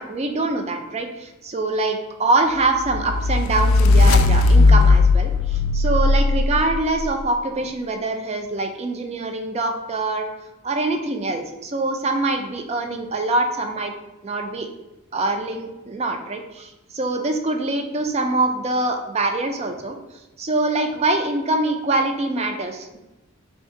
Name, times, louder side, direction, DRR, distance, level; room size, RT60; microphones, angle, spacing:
voice 1, 0.0-10.3 10.6-13.9 14.2-14.7 15.1-20.0 20.4-23.0, right 2 dB, 30° right, 5 dB, 0.4 m, -24 dB
sound 1, 2.8-7.1, left 3 dB, 75° left, 0.3 m, -16 dB
3.3 x 2.7 x 4.4 m, 1.0 s
head